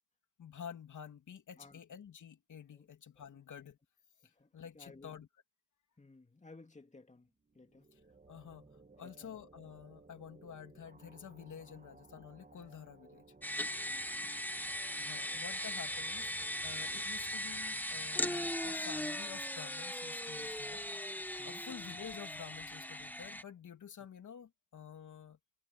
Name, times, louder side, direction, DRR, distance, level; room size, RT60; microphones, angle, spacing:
voice 1, 0.4-3.8 4.2-5.3 7.9-8.0 8.3-8.7 9.0-13.2 15.0-21.1 21.4-25.4, left 8 dB, 75° left, 3.0 m, -50 dB
voice 2, 4.2-5.2 6.0-7.3 7.5-7.9 9.0-9.4 13.8-14.3 16.9-17.0 21.4-21.7, left 3 dB, 25° left, 2.4 m, -58 dB
sound 1, 7.4-19.0, right 3 dB, 25° right, 1.8 m, -60 dB
sound 2, 13.4-23.4, left 1 dB, 5° left, 1.5 m, -39 dB
cardioid pair, 55°, 31 cm